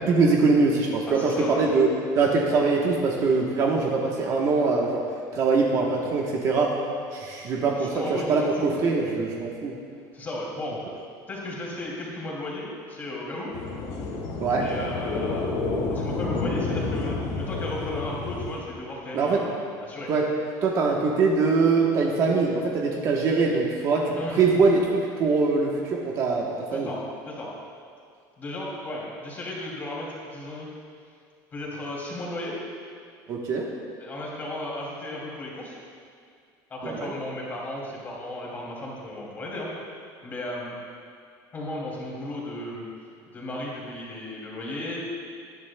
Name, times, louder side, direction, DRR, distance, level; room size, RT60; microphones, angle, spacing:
voice 1, 0.0-1.9 2.1-5.0 5.3-6.7 7.1-9.8 14.4-14.7 19.1-19.4 20.1-20.3 20.6-26.9 33.3-33.7 36.8-37.1, right 4 dB, 40° right, -1 dB, 1.1 m, -23 dB
voice 2, 1.1-1.6 7.8-8.8 10.1-10.8 11.3-13.5 14.5-15.5 15.9-19.5 19.8-20.1 24.1-24.4 26.7-27.0 27.3-27.5 28.4-30.7 31.5-32.5 34.0-35.8 36.7-39.7 40.2-40.7 41.5-42.8 43.3-45.0, left 1 dB, 20° left, -4 dB, 2.6 m, -35 dB
sound 1, 13.5-18.6, left 3 dB, 80° left, 1.8 m, -29 dB
18.5 x 11.0 x 2.2 m, 2.2 s
cardioid pair, 170°, 9 cm